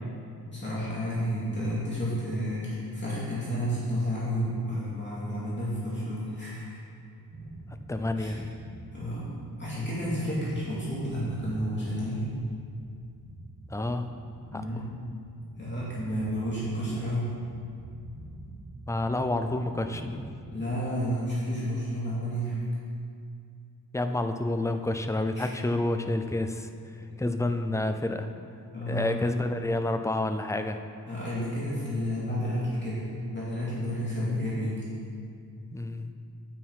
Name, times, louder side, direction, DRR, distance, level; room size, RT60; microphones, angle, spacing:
voice 1, 0.5-6.8 8.2-8.3 8.9-9.3 9.6-12.3 14.5-14.9 15.6-17.4 20.5-22.6 25.4-25.5 28.7-29.2 31.1-34.8, equal, 30° left, -9 dB, 2.4 m, -31 dB
sound 1, 7.3-20.2, right 2 dB, 55° right, 2.0 m, -47 dB
voice 2, 7.9-8.5 13.7-14.2 14.5-14.9 18.9-20.4 23.9-28.3 28.9-30.8 35.7-36.1, left 2 dB, 10° left, 7 dB, 0.4 m, -29 dB
9.1 x 8.9 x 4.7 m, 2.3 s
wide cardioid pair, 145°, 37 cm